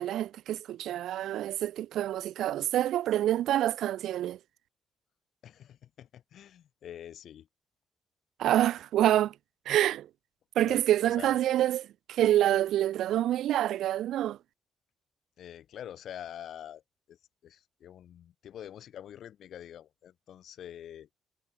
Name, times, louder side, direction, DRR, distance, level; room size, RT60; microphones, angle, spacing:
voice 1, 0.0-4.4 8.4-9.4 9.7-10.1 10.6-11.8 12.1-14.4, right 12 dB, 80° right, 0.4 m, -27 dB
voice 2, 5.4-7.5 8.6-8.7 10.6-11.4 15.4-16.8 17.1-21.1, left 10 dB, 70° left, 4.9 m, -46 dB
cardioid pair, 80°, 0 cm